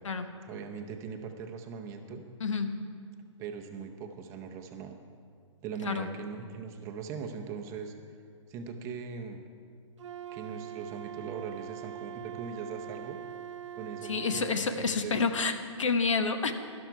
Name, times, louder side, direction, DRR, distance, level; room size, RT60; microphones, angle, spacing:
voice 1, 0.4-2.2 3.4-5.0 5.6-7.9 8.5-9.4 10.3-13.2 13.8-14.6 15.0-15.2, right 6 dB, 20° right, 4 dB, 0.7 m, -40 dB
voice 2, 2.4-2.8 5.8-6.1 14.0-16.5, left 4 dB, 75° left, 8 dB, 1.1 m, -29 dB
Wind instrument woodwind instrument, 10.0-14.6, right 10 dB, 70° right, 0.5 m, -42 dB
12.5 x 11.5 x 4.5 m, 2.2 s
hypercardioid pair, 150°, 16 cm